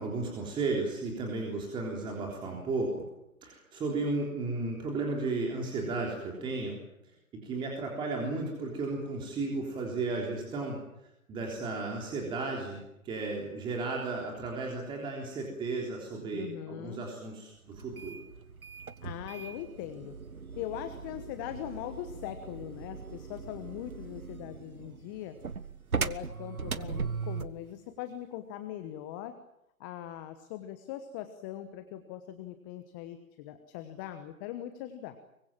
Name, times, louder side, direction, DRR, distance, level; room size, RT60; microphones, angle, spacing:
voice 1, 0.0-2.9 3.4-6.8 7.3-10.8 11.3-18.2, right 3 dB, 10° right, -1 dB, 3.6 m, -34 dB
voice 2, 16.3-17.0 19.0-20.1 20.5-25.4 25.9-29.3 29.8-35.2, left 11 dB, 15° left, 10 dB, 1.1 m, -41 dB
sound 1, 17.7-27.6, right 5 dB, 80° right, 1.4 m, -39 dB
25.0 x 24.0 x 7.5 m, 0.84 s
figure-of-eight pair, 140°, 42 cm